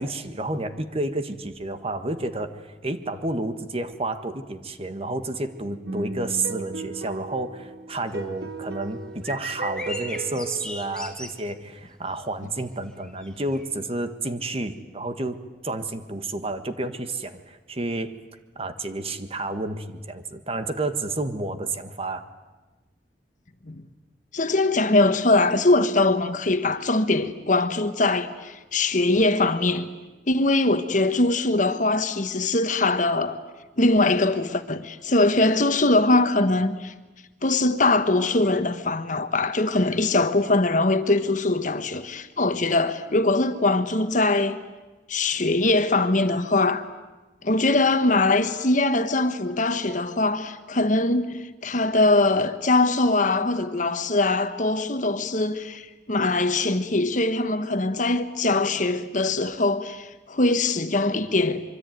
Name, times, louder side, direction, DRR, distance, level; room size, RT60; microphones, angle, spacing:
voice 1, 0.0-15.4 15.6-18.2 18.5-22.3, right 2 dB, 35° right, 1.6 m, -30 dB
sound 1, 5.8-11.2, right 3 dB, 65° right, 1.6 m, -36 dB
sound 2, 7.9-13.6, left 1 dB, 5° left, 2.6 m, -39 dB
voice 2, 24.3-29.9 30.3-33.4 33.8-36.9 37.4-44.6 45.1-46.8 47.4-61.6, left 2 dB, 45° left, 1.4 m, -22 dB
25.0 x 24.5 x 9.4 m
head